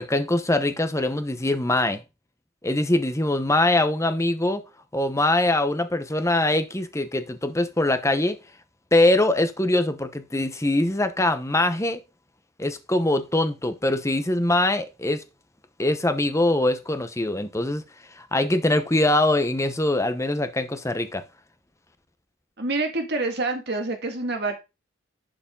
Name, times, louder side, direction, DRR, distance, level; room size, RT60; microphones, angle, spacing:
voice 1, 0.0-2.0 2.6-4.6 4.9-8.4 8.9-12.0 12.6-15.2 15.8-17.8 18.2-21.2, left 1 dB, 15° left, 1.0 m, -23 dB
voice 2, 22.6-24.5, right 3 dB, 55° right, 2.0 m, -27 dB
11.0 x 5.0 x 3.8 m
head